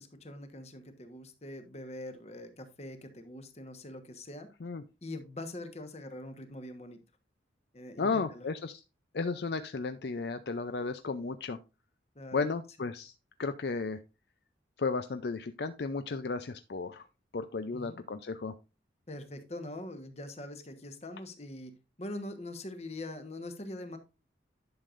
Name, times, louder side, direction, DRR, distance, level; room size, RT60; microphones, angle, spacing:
voice 1, 0.0-4.5 5.0-7.0 7.7-8.4 12.1-12.6 17.7-18.0 19.1-24.0, left 1 dB, 35° left, 8 dB, 1.2 m, -43 dB
voice 2, 8.0-8.8 9.1-11.6 12.3-13.1 13.4-14.0 14.8-17.1 17.3-18.5, left 4 dB, 60° left, 10 dB, 0.5 m, -34 dB
11.0 x 6.6 x 2.5 m, 0.29 s
head